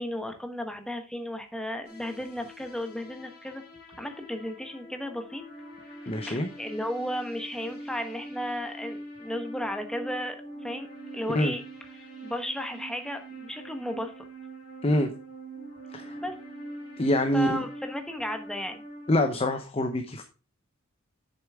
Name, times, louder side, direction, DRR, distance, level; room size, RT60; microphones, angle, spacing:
voice 1, 0.0-5.4 6.0-10.9 11.1-11.6 12.0-14.2 16.2-16.4 17.3-18.8, equal, 5° left, 1.2 m, -34 dB
sound 1, 1.8-19.1, right 1 dB, 50° left, 3.2 m, -44 dB
voice 2, 6.1-6.5 11.3-11.5 14.8-15.1 15.9-16.2 17.0-17.6 19.1-20.2, left 1 dB, 30° left, 0.8 m, -25 dB
8.1 x 6.8 x 3.6 m
head